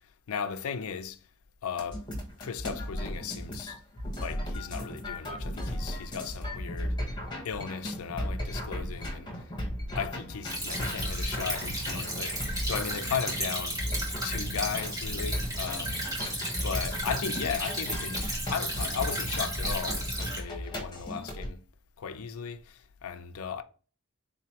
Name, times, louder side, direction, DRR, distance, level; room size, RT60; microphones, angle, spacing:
voice 1, 0.3-1.2 1.6-2.0 2.4-3.8 4.2-7.0 7.4-9.3 9.9-13.8 14.2-16.0 16.6-21.6 22.0-23.6, left 6 dB, 75° left, 0.4 m, -36 dB
sound 1, 1.8-21.5, equal, 20° left, 1.0 m, -36 dB
Stream / Trickle dribble, 10.5-20.4, right 1 dB, 15° right, 1.0 m, -34 dB
4.0 x 2.9 x 2.9 m
head